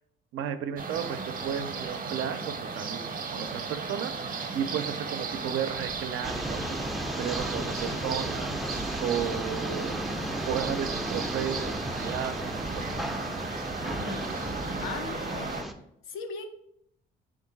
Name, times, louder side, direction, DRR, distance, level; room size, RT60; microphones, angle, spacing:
voice 1, 0.3-6.8 7.2-8.6 9.0-10.0 10.5-12.8, right 8 dB, 85° right, 9 dB, 0.4 m, -34 dB
sound 1, 0.8-15.6, right 4 dB, 45° right, 0.6 m, -36 dB
sound 2, 6.2-15.7, equal, ahead, 0.3 m, -34 dB
voice 2, 13.8-14.3 14.8-15.6 16.1-16.5, left 5 dB, 90° left, 5 dB, 0.5 m, -38 dB
3.6 x 2.5 x 3.9 m, 0.74 s
cardioid pair, 90°, 20 cm